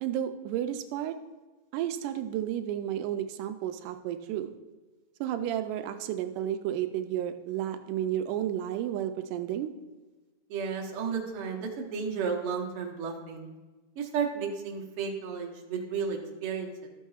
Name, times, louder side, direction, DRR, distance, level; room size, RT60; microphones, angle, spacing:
voice 1, 0.0-1.2 1.7-4.5 5.2-9.7, right 11 dB, 85° right, 8 dB, 2.1 m, -32 dB
voice 2, 10.5-13.6 14.0-16.9, right 6 dB, 60° right, 1 dB, 1.7 m, -33 dB
13.0 x 8.2 x 2.4 m, 1.2 s
omnidirectional pair, 3.6 m